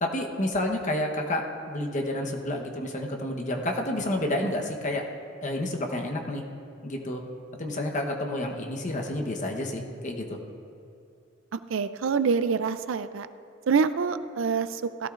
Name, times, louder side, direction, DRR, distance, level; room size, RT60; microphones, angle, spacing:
voice 1, 0.0-5.1 5.4-6.4 6.8-7.2 7.6-10.4, left 1 dB, 40° left, 2 dB, 1.1 m, -30 dB
voice 2, 11.5-13.3 13.7-15.1, right 5 dB, 85° right, 12 dB, 0.5 m, -26 dB
17.0 x 12.0 x 2.5 m, 2.6 s
head